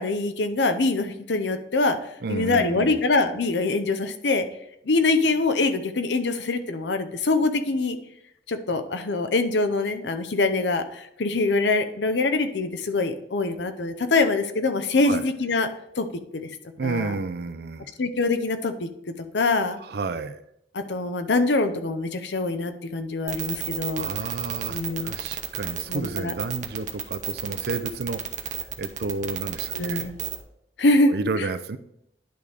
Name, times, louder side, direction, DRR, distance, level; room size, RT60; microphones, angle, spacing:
voice 1, 0.0-2.0 2.3-4.4 4.9-8.0 8.5-15.7 16.0-16.1 16.8-17.1 18.0-18.9 19.3-19.8 20.7-24.1 24.7-25.1 25.9-26.3 29.7-30.1 30.8-31.1, left 3 dB, 80° left, 8 dB, 0.7 m, -24 dB
voice 2, 2.2-3.1 15.1-15.2 16.8-17.9 19.8-20.4 24.0-28.2 28.8-30.1 31.0-31.8, right 3 dB, 65° right, 12 dB, 0.5 m, -31 dB
sound 1, 23.3-30.4, right 9 dB, 45° right, 0.8 m, -31 dB
10.5 x 3.5 x 4.8 m, 0.77 s
head